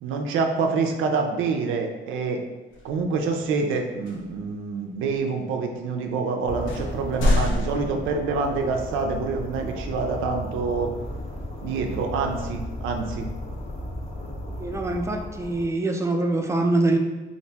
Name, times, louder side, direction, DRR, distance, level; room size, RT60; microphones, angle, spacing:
voice 1, 0.0-2.4 2.8-10.9 11.6-13.3, right 4 dB, 85° right, 3 dB, 0.4 m, -26 dB
sound 1, 2.7-3.0 4.1-4.5 5.1-5.2 6.1-6.2 6.7-8.6, left 1 dB, 75° left, 0.6 m, -26 dB
sound 2, 6.4-15.6, left 1 dB, 35° left, 0.7 m, -35 dB
voice 2, 14.6-17.0, right 2 dB, 15° right, 3 dB, 0.4 m, -24 dB
2.8 x 2.6 x 3.3 m, 1.1 s
cardioid pair, 90°, 20 cm